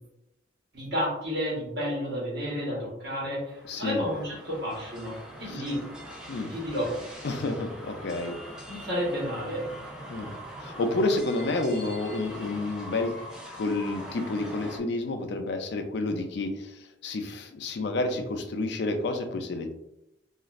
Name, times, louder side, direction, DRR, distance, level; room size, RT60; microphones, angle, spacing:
voice 1, 0.7-5.8 6.5-6.9 8.7-9.6, equal, 60° right, -6 dB, 1.1 m, -31 dB
sound 1, 3.3-14.8, equal, 5° right, 0.4 m, -43 dB
voice 2, 3.7-4.0 5.5-5.6 6.3-6.5 7.2-8.4 10.1-10.3 10.6-13.1 13.5-19.7, left 2 dB, 65° left, 6 dB, 0.4 m, -30 dB
3.0 x 2.4 x 2.4 m, 0.85 s
head